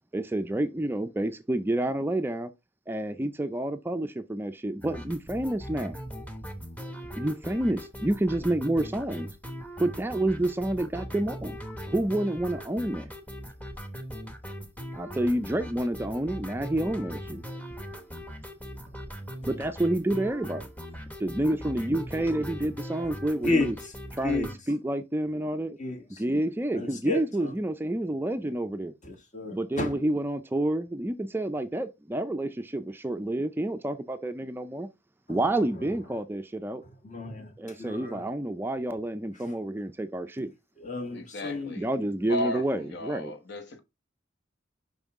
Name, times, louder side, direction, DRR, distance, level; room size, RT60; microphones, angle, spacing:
voice 1, 0.1-2.5 2.9-6.0 7.2-9.3 9.8-11.6 11.9-13.1 14.9-17.4 19.5-20.7 21.2-23.8 24.2-25.8 26.2-28.9 29.5-34.9 35.3-36.8 37.6-40.5 41.8-43.3, right 1 dB, 10° right, 0.4 m, -29 dB
sound 1, 4.8-24.6, equal, 10° left, 0.9 m, -40 dB
voice 2, 23.4-23.9 24.2-24.5 25.8-26.0 26.7-27.5 29.0-29.9 35.3-35.4 37.0-37.5 37.8-38.3 40.8-41.7, left 2 dB, 40° left, 1.4 m, -31 dB
voice 3, 41.1-41.9 42.3-43.8, left 1 dB, 60° left, 1.1 m, -35 dB
5.4 x 5.3 x 3.5 m
head